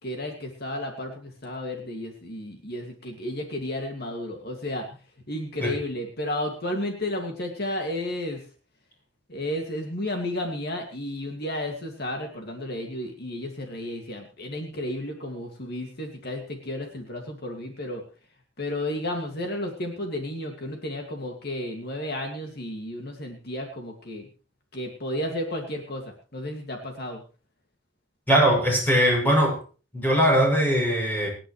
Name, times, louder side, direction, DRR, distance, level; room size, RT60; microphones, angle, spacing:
voice 1, 0.0-4.9 5.3-8.4 9.3-18.0 18.6-24.3 24.7-26.0 26.3-27.2, left 1 dB, 55° left, 3 dB, 2.4 m, -32 dB
voice 2, 28.3-29.6 29.9-31.3, equal, 10° left, 0 dB, 7.6 m, -20 dB
29.5 x 10.0 x 3.3 m, 0.37 s
head